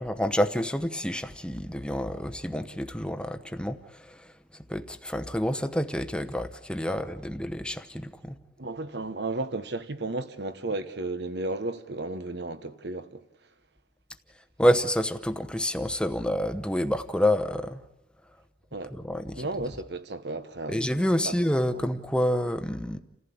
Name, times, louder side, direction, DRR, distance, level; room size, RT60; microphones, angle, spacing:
voice 1, 0.0-4.2 4.7-8.4 14.6-17.8 18.9-19.4 20.7-23.0, equal, 5° left, 0.9 m, -28 dB
voice 2, 8.6-13.2 18.7-18.9 19.4-20.8 21.2-21.3 21.7-21.8, right 2 dB, 65° right, 1.2 m, -33 dB
29.5 x 15.0 x 8.6 m
head